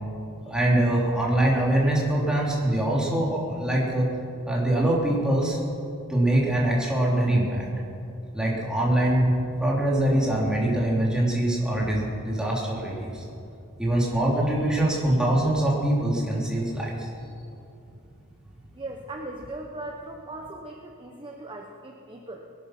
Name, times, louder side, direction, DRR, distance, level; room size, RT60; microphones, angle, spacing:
voice 1, 0.4-4.1 4.4-5.6 6.1-7.6 8.3-9.3 9.6-13.2 13.8-17.1, right 1 dB, 5° right, -5 dB, 3.4 m, -23 dB
voice 2, 18.7-22.5, right 2 dB, 20° right, 1 dB, 1.0 m, -39 dB
21.0 x 11.5 x 6.0 m, 2.6 s
head